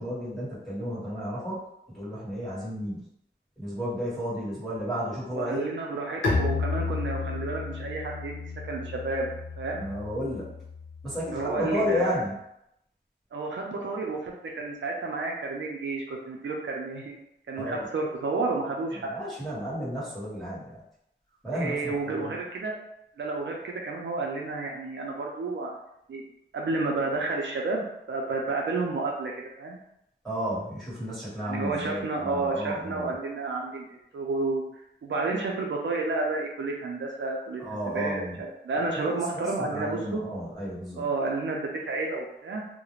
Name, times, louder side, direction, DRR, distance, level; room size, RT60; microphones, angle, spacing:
voice 1, 0.0-1.6 1.9-3.0 3.6-5.7 9.8-10.4 11.0-12.3 17.6-17.9 18.9-20.8 21.4-22.3 30.2-33.1 37.6-38.4 38.8-41.0, equal, ahead, -10 dB, 1.3 m, -32 dB
voice 2, 5.3-8.3 8.7-9.3 9.6-9.9 11.3-12.2 13.3-17.2 17.5-19.1 21.5-22.8 23.2-25.8 26.1-26.2 26.5-29.3 29.6-29.8 31.4-34.6 35.0-40.2 41.0-42.7, right 3 dB, 75° right, 0 dB, 0.5 m, -31 dB
Bowed string instrument, 6.2-11.8, left 4 dB, 80° left, 0.6 m, -32 dB
2.4 x 2.1 x 3.0 m, 0.79 s
wide cardioid pair, 90°, 19 cm